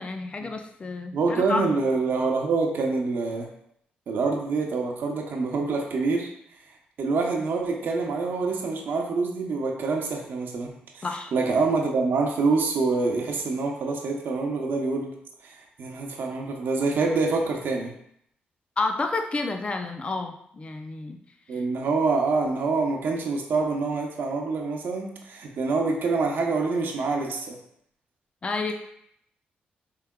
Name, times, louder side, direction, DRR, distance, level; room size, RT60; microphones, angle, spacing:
voice 1, 0.0-1.7 11.0-11.3 18.8-21.2 21.5-21.6 28.4-28.7, left 3 dB, 30° left, 5 dB, 0.4 m, -30 dB
voice 2, 1.1-3.5 4.1-6.3 7.0-11.1 11.3-15.1 15.4-17.9 21.5-27.6, right 4 dB, 70° right, 1 dB, 0.8 m, -26 dB
4.7 x 3.4 x 2.3 m, 0.71 s
cardioid pair, 80°, 4 cm